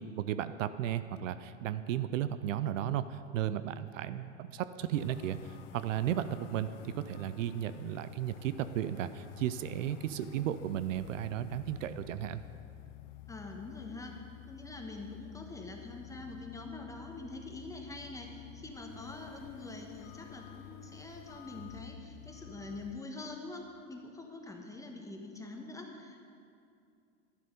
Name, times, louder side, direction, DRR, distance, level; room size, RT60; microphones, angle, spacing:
voice 1, 0.0-12.4, right 11 dB, 75° right, 13 dB, 0.6 m, -34 dB
sound 1, 4.9-23.0, left 12 dB, 70° left, 0.6 m, -51 dB
voice 2, 13.3-26.2, left 2 dB, 10° left, 2 dB, 1.2 m, -45 dB
12.0 x 7.5 x 5.1 m, 2.4 s
hypercardioid pair, 100°, 39 cm